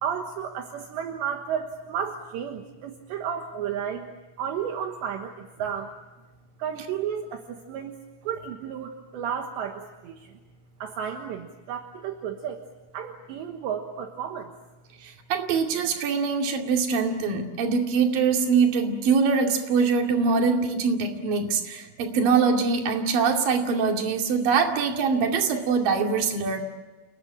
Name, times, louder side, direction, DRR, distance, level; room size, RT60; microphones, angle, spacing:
voice 1, 0.0-4.1 4.4-5.9 6.6-8.0 8.2-10.3 10.8-12.6 12.9-14.5, right 8 dB, 70° right, 4 dB, 3.3 m, -32 dB
voice 2, 15.0-26.6, right 5 dB, 50° right, 3 dB, 3.7 m, -23 dB
29.0 x 20.5 x 8.8 m, 1.2 s
omnidirectional pair, 5.7 m